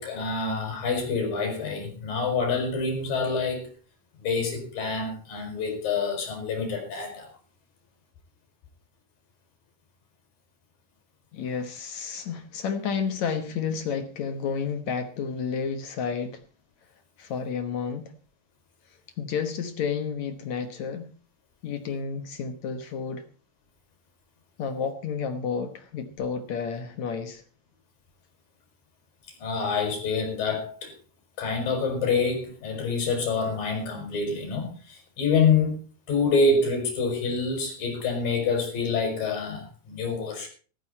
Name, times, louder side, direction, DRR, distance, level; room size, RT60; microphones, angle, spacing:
voice 1, 0.0-3.7 4.2-7.3 29.4-30.9 31.4-35.8 36.1-40.5, left 4 dB, 55° left, 3 dB, 7.1 m, -26 dB
voice 2, 11.3-16.4 17.2-18.1 19.2-21.1 21.6-23.2 24.6-27.4, left 6 dB, 70° left, 9 dB, 1.7 m, -31 dB
14.5 x 14.5 x 4.3 m, 0.39 s
omnidirectional pair, 4.9 m